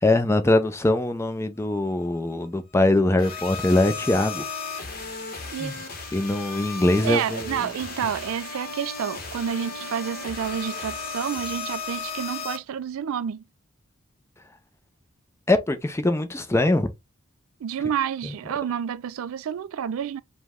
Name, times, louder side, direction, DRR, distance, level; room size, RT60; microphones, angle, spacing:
voice 1, 0.0-4.4 5.6-5.7 6.1-7.6 15.5-16.9 18.2-18.3, left 2 dB, 15° left, 0.5 m, -22 dB
sound 1, 3.2-12.6, left 4 dB, 45° left, 1.1 m, -35 dB
voice 2, 7.0-13.4 17.6-20.2, right 8 dB, 80° right, 0.3 m, -29 dB
5.0 x 2.2 x 3.5 m
head